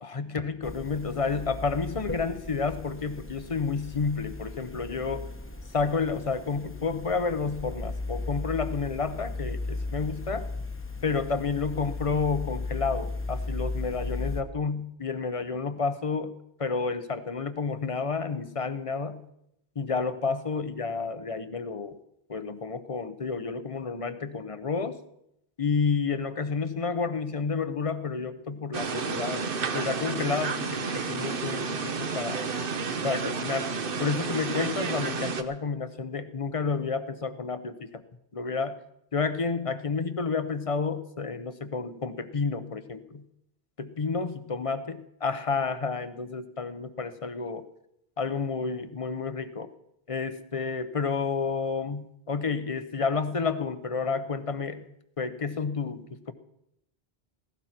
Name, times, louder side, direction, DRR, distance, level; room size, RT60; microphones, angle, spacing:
voice 1, 0.0-5.3 5.7-10.5 11.0-16.3 16.6-19.2 19.7-22.0 22.3-25.0 25.6-29.5 29.7-32.5 33.0-33.7 34.0-38.0 38.3-38.8 39.1-43.2 43.8-47.7 48.2-49.7 50.1-54.8 55.2-56.3, left 4 dB, 35° left, 11 dB, 0.8 m, -30 dB
sound 1, 0.6-14.4, left 3 dB, 15° left, 1.0 m, -36 dB
sound 2, 28.7-35.4, right 4 dB, 60° right, 1.1 m, -31 dB
16.5 x 16.5 x 4.4 m, 0.80 s
omnidirectional pair, 1.0 m